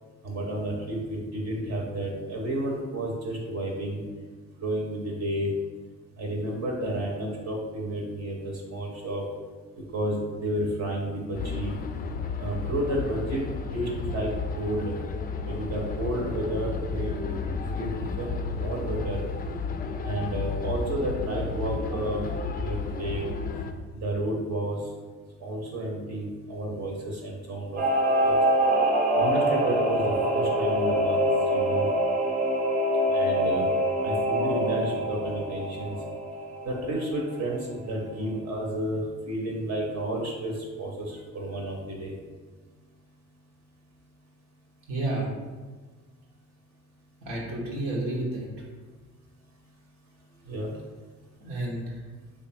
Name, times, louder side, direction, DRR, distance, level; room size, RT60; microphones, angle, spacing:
voice 1, 0.2-4.0 4.6-5.5 6.2-9.3 9.9-11.7 12.4-13.4 13.7-14.9 15.4-17.3 17.7-19.2 20.0-22.3 22.5-23.2 23.9-24.8 25.4-27.8 28.2-28.4 29.2-31.9 33.1-33.7 34.0-36.0 36.6-42.2 50.5-50.7, right 1 dB, 55° right, -1 dB, 0.9 m, -31 dB
sound 1, 11.3-23.7, left 4 dB, 30° left, 0.3 m, -32 dB
Singing / Musical instrument, 27.8-37.8 38.1-38.2, equal, 25° right, 0.7 m, -25 dB
voice 2, 44.9-45.3 47.2-48.5 51.4-51.9, right 2 dB, 90° right, -4 dB, 1.0 m, -30 dB
3.3 x 2.4 x 4.1 m, 1.4 s
supercardioid pair, 65°, 32 cm